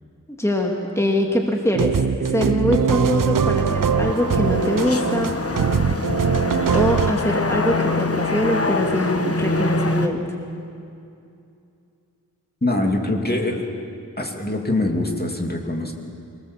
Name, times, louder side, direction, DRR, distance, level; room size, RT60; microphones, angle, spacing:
voice 1, 0.4-5.3 6.7-10.2, left 1 dB, 10° left, 1 dB, 2.2 m, -23 dB
sound 1, 1.7-7.1, right 6 dB, 75° right, 0.7 m, -21 dB
sound 2, 3.4-10.1, left 3 dB, 45° left, 1.3 m, -25 dB
voice 2, 12.6-13.7 14.2-15.9, left 2 dB, 30° left, 1 dB, 2.4 m, -23 dB
25.0 x 19.0 x 7.3 m, 2.6 s
wide cardioid pair, 60°, 33 cm